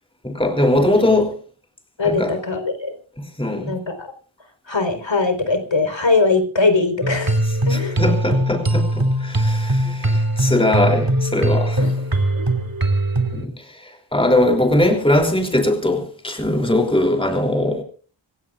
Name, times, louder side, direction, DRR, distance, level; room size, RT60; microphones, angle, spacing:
voice 1, 0.2-1.3 2.0-2.3 3.2-3.7 7.7-11.8 13.3-17.8, left 1 dB, 10° left, 3 dB, 3.2 m, -20 dB
voice 2, 2.0-3.0 3.5-4.1 4.7-7.4 7.7-8.0 11.8-11.9 12.3-12.5, left 3 dB, 70° left, 8 dB, 4.3 m, -21 dB
sound 1, 7.0-13.5, right 1 dB, 45° right, 2.9 m, -20 dB
26.5 x 16.0 x 2.5 m, 0.41 s
wide cardioid pair, 70°, 47 cm